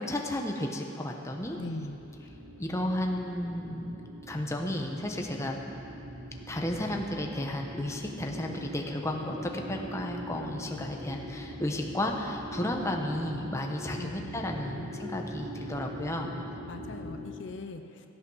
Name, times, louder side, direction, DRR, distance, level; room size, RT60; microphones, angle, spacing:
voice 1, 0.0-1.6 2.6-4.0 4.3-5.6 6.5-16.3, left 1 dB, 15° left, 1 dB, 1.0 m, -33 dB
sound 1, 1.3-17.2, equal, 80° right, 2.2 m, -42 dB
voice 2, 1.6-2.0 14.0-14.4 14.6-14.9 16.7-17.8, left 2 dB, 70° left, 7 dB, 0.7 m, -40 dB
15.5 x 8.8 x 6.3 m, 2.7 s
head